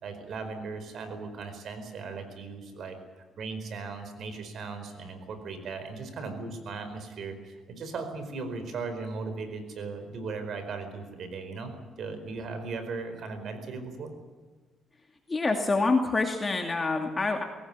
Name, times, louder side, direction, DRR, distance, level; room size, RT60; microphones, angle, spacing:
voice 1, 0.0-14.1, right 4 dB, 65° right, 8 dB, 4.7 m, -38 dB
voice 2, 15.3-17.4, left 3 dB, 25° left, 3 dB, 2.5 m, -26 dB
22.5 x 18.0 x 8.5 m, 1.3 s
cardioid pair, 90°, 0 cm